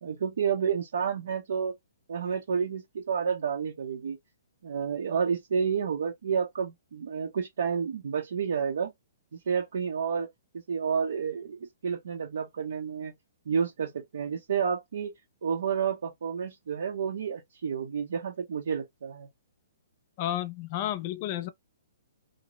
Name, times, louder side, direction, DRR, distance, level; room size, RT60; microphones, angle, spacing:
voice 1, 0.0-1.7 2.1-4.2 4.6-8.9 9.3-10.3 10.7-13.1 13.5-15.1 15.4-19.3, right 6 dB, 75° right, 0.6 m, -30 dB
voice 2, 20.2-21.5, left 12 dB, 35° left, 0.4 m, -31 dB
2.6 x 2.0 x 2.9 m
hypercardioid pair, 160°, 0 cm